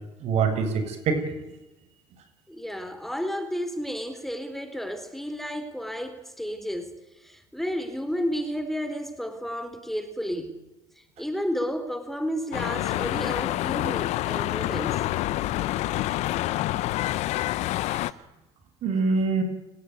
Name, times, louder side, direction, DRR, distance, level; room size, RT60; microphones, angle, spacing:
voice 1, 0.2-1.2 17.9-18.0 18.8-19.4, right 4 dB, 60° right, 8 dB, 7.5 m, -24 dB
voice 2, 2.5-10.6 11.0-15.1, equal, ahead, 9 dB, 3.9 m, -32 dB
sound 1, 12.5-18.1, left 16 dB, 65° left, 1.0 m, -27 dB
30.0 x 18.5 x 9.7 m, 0.99 s
supercardioid pair, 85°, 12 cm